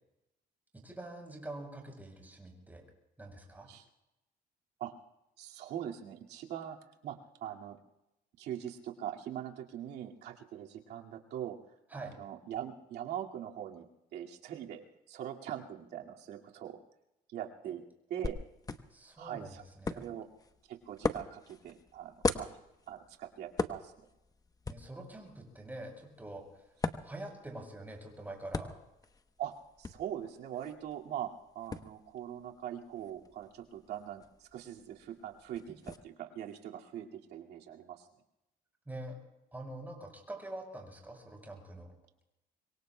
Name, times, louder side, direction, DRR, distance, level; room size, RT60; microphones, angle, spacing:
voice 1, 0.8-2.8 3.2-3.7 11.9-12.2 17.6-17.7 18.9-20.1 24.7-26.7 27.0-28.7 38.9-39.2 39.5-41.9, right 1 dB, 10° right, 1 dB, 6.3 m, -45 dB
voice 2, 5.4-6.8 7.0-7.8 8.4-11.6 11.9-13.9 14.1-16.8 17.3-17.8 18.1-18.4 19.2-19.6 20.0-20.3 20.7-22.5 22.9-23.9 29.4-29.5 29.8-31.3 31.5-38.1, right 10 dB, 80° right, 0 dB, 2.2 m, -42 dB
sound 1, 18.2-36.0, left 3 dB, 20° left, 0.9 m, -42 dB
25.5 x 23.0 x 2.2 m, 0.90 s
cardioid pair, 110°, 17 cm